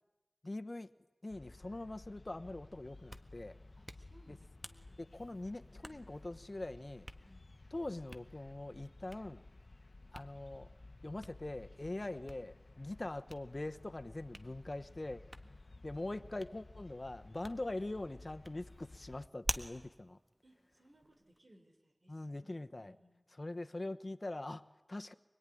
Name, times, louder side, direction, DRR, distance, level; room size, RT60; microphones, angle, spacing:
voice 1, 0.4-0.9 1.2-3.6 4.3-4.4 5.0-7.1 7.7-9.5 10.1-10.7 11.0-15.2 15.8-20.2 22.1-22.9 23.4-25.1, left 2 dB, 55° left, 9 dB, 1.1 m, -43 dB
sound 1, 1.3-19.3, left 2 dB, 90° left, 1.0 m, -56 dB
Hands, 2.9-21.4, right 1 dB, 25° right, 1.6 m, -51 dB
voice 2, 3.8-5.0 5.7-6.4 7.2-7.5 16.2-16.4 20.4-22.5 22.8-23.2, equal, 70° right, 4 dB, 4.6 m, -65 dB
25.0 x 21.5 x 10.0 m, 1.1 s
wide cardioid pair, 50°, 0 cm